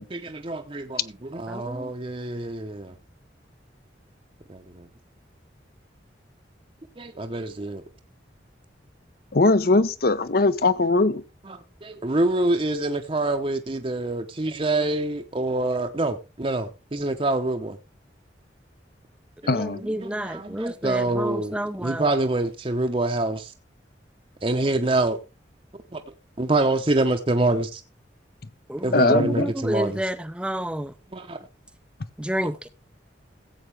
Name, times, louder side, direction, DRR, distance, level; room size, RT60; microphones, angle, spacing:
voice 1, 0.0-2.9 4.5-4.6 7.0-7.8 11.5-17.8 19.7-23.5 24.4-25.2 25.9-26.0 26.4-27.8 28.8-30.0 31.1-31.4, right 2 dB, 30° right, 0.8 m, -26 dB
voice 2, 1.5-1.9 19.4-22.1 28.7-30.9 32.2-32.7, equal, 5° right, 0.5 m, -30 dB
voice 3, 9.3-11.2 19.5-19.8 28.9-29.5, left 3 dB, 55° left, 0.8 m, -20 dB
15.5 x 7.9 x 3.4 m
head